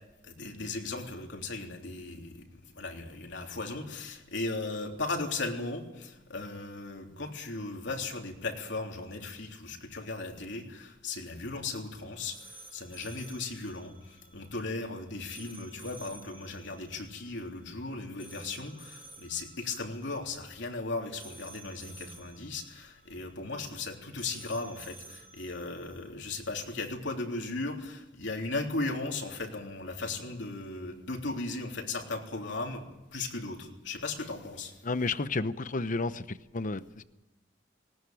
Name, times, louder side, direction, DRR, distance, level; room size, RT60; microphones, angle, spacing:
voice 1, 0.2-2.4 2.7-32.8 33.1-34.7, left 3 dB, 65° left, 3.4 m, -37 dB
sound 1, 11.8-26.1, right 2 dB, 25° left, 2.7 m, -53 dB
voice 2, 34.8-37.0, left 3 dB, 45° left, 0.9 m, -32 dB
19.0 x 19.0 x 9.3 m
head